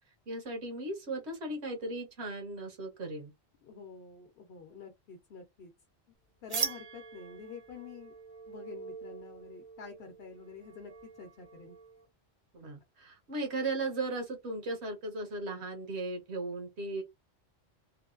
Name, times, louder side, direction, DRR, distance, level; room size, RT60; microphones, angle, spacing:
voice 1, 0.3-3.3 12.5-17.0, right 2 dB, 75° right, 1.3 m, -37 dB
voice 2, 3.6-5.7 6.4-8.1 8.5-10.9 11.2-11.8, left 5 dB, 65° left, 0.9 m, -48 dB
sound 1, 6.5-12.1, right 6 dB, 50° right, 0.7 m, -41 dB
3.3 x 2.2 x 2.4 m
omnidirectional pair, 1.1 m